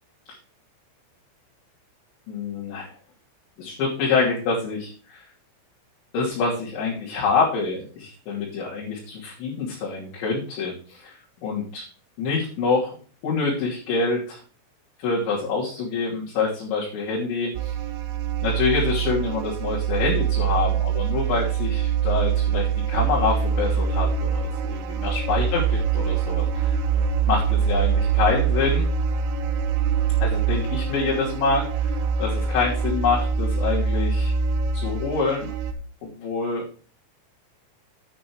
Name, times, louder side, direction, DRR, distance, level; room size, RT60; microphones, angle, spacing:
voice 1, 2.3-2.9 3.6-5.2 6.1-11.2 11.4-11.8 12.2-13.0 13.2-14.4 15.0-17.7 18.4-25.6 26.0-26.8 27.3-28.9 30.2-34.3 34.7-35.5 36.0-36.7, left 4 dB, 65° left, -7 dB, 5.2 m, -26 dB
sound 1, 17.5-35.7, right 6 dB, 75° right, 2.6 m, -24 dB
9.4 x 8.4 x 4.8 m, 0.40 s
omnidirectional pair, 5.8 m